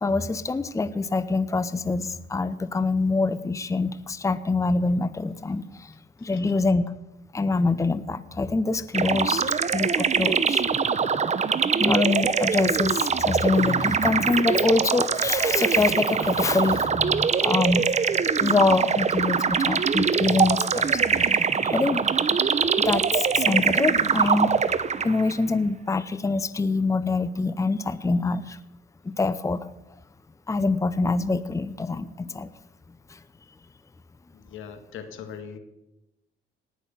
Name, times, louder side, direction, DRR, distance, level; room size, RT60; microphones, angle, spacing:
voice 1, 0.0-5.9 6.2-6.8 7.3-9.4 9.7-10.6 11.8-17.9 18.4-21.3 21.6-22.0 22.6-24.5 25.0-28.6 29.0-29.6 30.5-32.5, left 3 dB, 15° left, 14 dB, 0.7 m, -25 dB
sound 1, 8.9-25.3, right 6 dB, 35° right, 0.8 m, -23 dB
voice 2, 34.3-35.6, left 7 dB, 80° left, 8 dB, 2.0 m, -40 dB
18.5 x 6.5 x 9.2 m, 0.92 s
cardioid pair, 90°, 20 cm